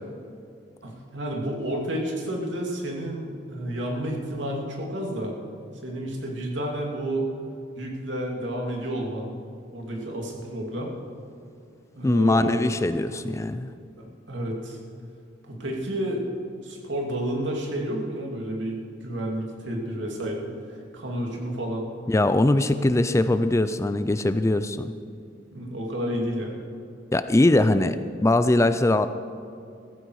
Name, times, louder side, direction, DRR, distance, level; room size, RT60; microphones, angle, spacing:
voice 1, 0.8-5.3 5.8-7.3 7.8-9.3 9.7-10.9 11.9-12.7 14.3-14.8 15.4-16.2 16.6-20.5 20.9-21.9 22.6-22.7 25.5-26.6, right 1 dB, 80° right, 0 dB, 2.6 m, -30 dB
voice 2, 12.0-13.7 22.1-24.9 27.1-29.1, left 1 dB, 15° left, 11 dB, 0.4 m, -21 dB
15.5 x 14.5 x 4.7 m, 2.4 s
head